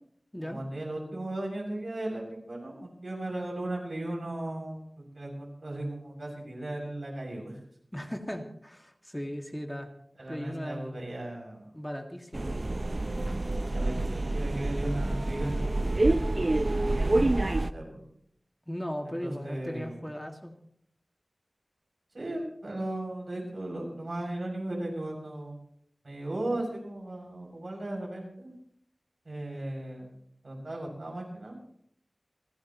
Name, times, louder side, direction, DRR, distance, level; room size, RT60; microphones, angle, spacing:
voice 1, 0.4-4.8 5.1-7.6 10.2-11.7 13.7-18.1 19.2-20.0 22.1-25.6 26.0-28.5 29.3-30.1 30.4-31.6, right 1 dB, 75° right, -1 dB, 6.9 m, -36 dB
voice 2, 7.9-9.9 10.3-11.0 11.7-12.5 18.7-20.6, equal, 10° left, 3 dB, 2.1 m, -37 dB
sound 1, 12.3-17.7, right 2 dB, 50° right, 0.6 m, -27 dB
30.0 x 11.5 x 3.1 m, 0.67 s
wide cardioid pair, 45°, 0 cm